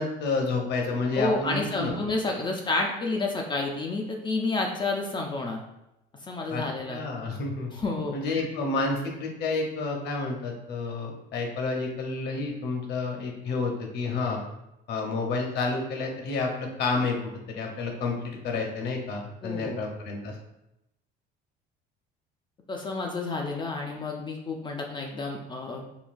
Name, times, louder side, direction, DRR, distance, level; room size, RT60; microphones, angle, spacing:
voice 1, 0.0-1.9 6.5-6.6 6.9-7.7 8.1-14.4 14.9-20.4, left 3 dB, 55° left, 1 dB, 0.8 m, -30 dB
voice 2, 1.2-5.6 6.2-7.0 7.7-8.5 19.4-19.8 22.7-25.8, left 3 dB, 25° left, 1 dB, 0.4 m, -30 dB
3.7 x 2.3 x 2.5 m, 0.88 s
cardioid pair, 125°, 20 cm